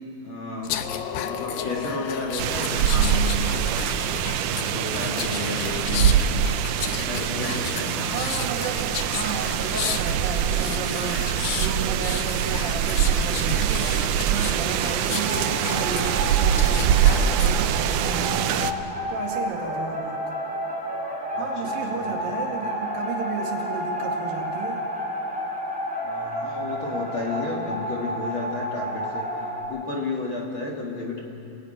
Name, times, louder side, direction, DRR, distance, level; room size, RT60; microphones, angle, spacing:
voice 1, 0.2-3.6 4.4-6.3 6.8-8.1 21.3-22.2 26.0-29.3 29.7-31.2, left 3 dB, 40° left, 0 dB, 2.0 m, -32 dB
sound 1, 0.6-17.6 18.0-18.3, left 9 dB, 70° left, 2.5 m, -33 dB
sound 2, 2.4-18.7, right 9 dB, 85° right, 1.8 m, -24 dB
voice 2, 8.0-18.7 19.1-20.2 21.4-24.9, right 5 dB, 65° right, 1 dB, 3.8 m, -33 dB
sound 3, 15.0-29.6, equal, ahead, 5.5 m, -31 dB
27.5 x 16.5 x 9.0 m, 2.7 s
omnidirectional pair, 4.5 m